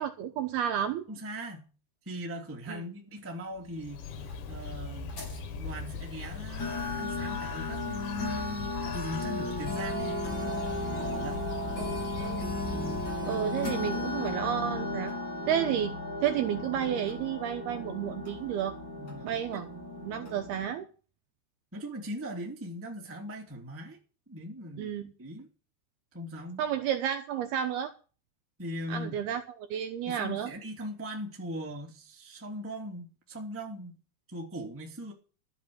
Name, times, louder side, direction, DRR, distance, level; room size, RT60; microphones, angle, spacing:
voice 1, 0.0-1.1 2.7-2.8 11.8-12.5 13.3-15.1 15.5-15.9 16.2-18.8 19.2-20.9 24.8-25.1 26.6-27.9 28.9-30.5, right 9 dB, 70° right, 2.6 m, -31 dB
voice 2, 1.1-1.7 2.0-4.0 4.5-5.2 5.5-10.2 10.9-11.5 12.4-12.5 12.7-13.3 13.6-14.0 19.0-19.7 21.7-24.0 24.3-24.9 25.2-25.5 26.1-26.7 28.6-29.2 30.0-34.0 34.3-35.1, equal, 5° right, 1.4 m, -40 dB
Bird, 3.6-13.6, left 4 dB, 80° left, 3.9 m, -39 dB
sound 1, 4.3-4.4 5.1-5.4 6.2-6.3 6.6-20.7, left 2 dB, 25° left, 4.1 m, -35 dB
13.0 x 8.1 x 7.8 m
omnidirectional pair, 5.4 m